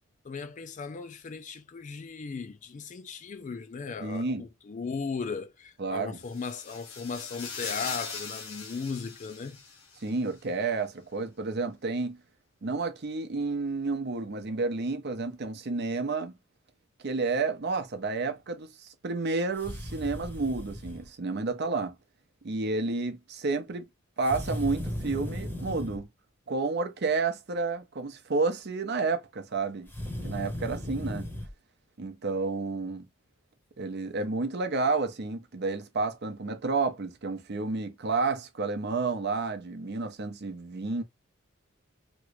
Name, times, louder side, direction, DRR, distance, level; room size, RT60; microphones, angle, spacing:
voice 1, 0.2-9.6, left 5 dB, 35° left, 0.4 m, -37 dB
voice 2, 4.0-4.4 5.8-6.2 10.0-12.2 12.6-16.3 17.0-22.0 22.4-23.8 24.2-26.1 26.5-29.9 30.2-31.3 32.0-33.1 33.8-41.0, right 3 dB, 50° right, 0.6 m, -30 dB
sound 1, 6.2-10.1, left 5 dB, 75° left, 1.3 m, -40 dB
sound 2, 19.5-21.0 24.2-26.0 29.8-31.5, equal, 10° left, 0.8 m, -36 dB
3.0 x 2.5 x 3.0 m
head